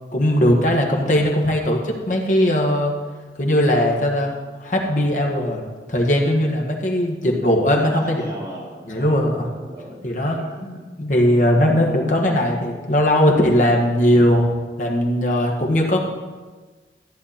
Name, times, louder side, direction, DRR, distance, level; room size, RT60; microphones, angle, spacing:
voice 1, 0.1-2.9 3.4-4.3 4.6-5.6 5.9-8.2 8.9-9.5 10.0-10.4 11.0-14.5 14.8-16.1, equal, 45° left, 0 dB, 1.7 m, -19 dB
voice 2, 7.9-10.9, right 1 dB, 20° right, -8 dB, 4.2 m, -37 dB
14.0 x 9.7 x 4.3 m, 1.3 s
head